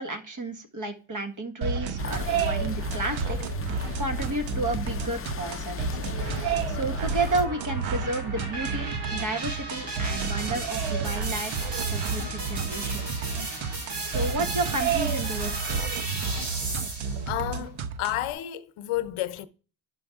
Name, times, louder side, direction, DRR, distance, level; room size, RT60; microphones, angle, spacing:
voice 1, 0.0-6.0 6.7-13.2 14.0-16.0, right 2 dB, 40° right, 1.6 m, -32 dB
sound 1, 1.6-18.3, right 6 dB, 75° right, 0.9 m, -31 dB
sound 2, 2.0-7.5, left 8 dB, 30° left, 0.6 m, -36 dB
sound 3, 6.2-17.3, right 2 dB, 55° right, 4.4 m, -35 dB
voice 2, 17.3-19.5, left 14 dB, 85° left, 0.8 m, -31 dB
10.5 x 6.2 x 3.5 m
cardioid pair, 80°, 48 cm